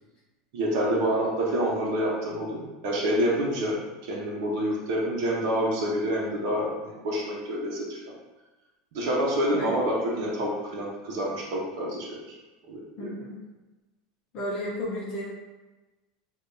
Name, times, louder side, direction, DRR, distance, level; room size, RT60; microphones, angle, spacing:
voice 1, 0.5-3.8 4.1-8.0 8.9-12.2 12.7-13.1, equal, 60° right, -4 dB, 1.0 m, -27 dB
voice 2, 13.0-13.4 14.3-15.3, equal, 30° left, -6 dB, 0.9 m, -33 dB
6.6 x 2.7 x 2.7 m, 1.1 s
supercardioid pair, 175°, 3 cm